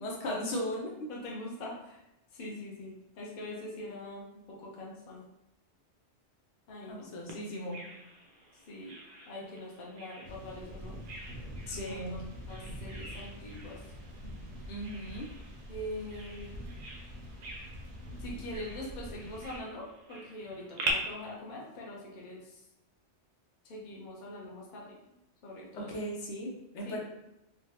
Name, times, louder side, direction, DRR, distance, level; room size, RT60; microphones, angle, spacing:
voice 1, 0.0-1.1 6.9-7.9 11.7-12.2 14.7-15.3 25.8-27.0, equal, 80° left, -2 dB, 1.0 m, -37 dB
voice 2, 1.1-2.0 2.3-5.2 6.7-7.1 8.7-8.9 9.3-11.0 11.8-12.2 12.5-13.8 15.7-16.5 18.2-22.6 23.6-24.9 25.4-26.0 26.8-27.0, left 1 dB, 45° left, -3 dB, 0.8 m, -43 dB
Bird vocalization bird call bird song, 7.3-20.9, right 2 dB, 55° right, 0.5 m, -45 dB
sound 1, 10.2-19.6, equal, 90° right, 1.0 m, -45 dB
3.3 x 2.2 x 2.8 m, 0.90 s
omnidirectional pair, 1.2 m